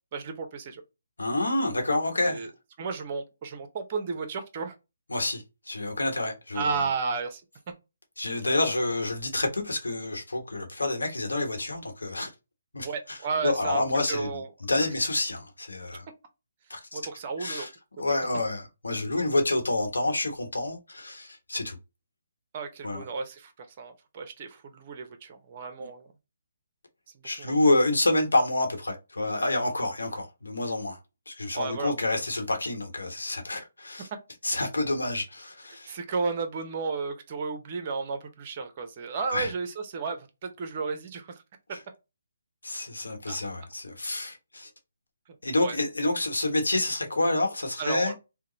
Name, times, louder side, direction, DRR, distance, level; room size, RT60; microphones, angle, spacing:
voice 1, 0.1-0.8 2.2-2.5 2.8-4.7 6.5-7.4 12.8-14.5 16.9-17.7 18.0-18.1 22.5-26.1 27.1-27.5 31.5-31.9 35.9-41.4 43.3-43.4 45.6-45.8 47.8-48.1, right 4 dB, 35° right, 0.8 m, -33 dB
voice 2, 1.2-2.5 5.1-6.8 8.2-12.3 12.7-13.2 13.4-14.4 14.7-16.1 16.7-17.0 17.4-17.7 18.0-21.8 22.8-23.0 25.8-25.9 27.2-31.0 31.3-34.1 34.4-35.9 39.3-39.5 41.7-41.8 42.6-44.7 45.4-48.1, left 2 dB, 90° left, 1.1 m, -28 dB
2.9 x 2.2 x 3.9 m
hypercardioid pair, 155°, 0 cm